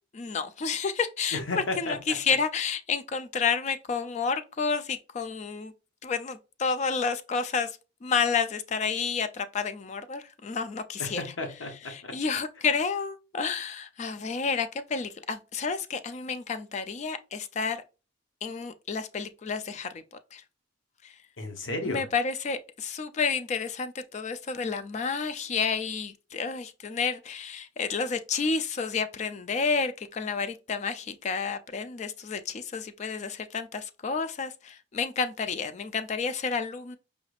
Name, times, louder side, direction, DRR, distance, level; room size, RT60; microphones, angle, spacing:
voice 1, 0.1-5.7 6.0-11.2 11.8-17.8 18.4-20.0 20.3-20.4 21.0-21.2 21.8-37.0, left 5 dB, 35° left, 0.3 m, -30 dB
voice 2, 1.3-2.0 11.0-12.1 21.4-22.0, left 2 dB, 85° left, 0.8 m, -33 dB
5.0 x 3.2 x 2.4 m
head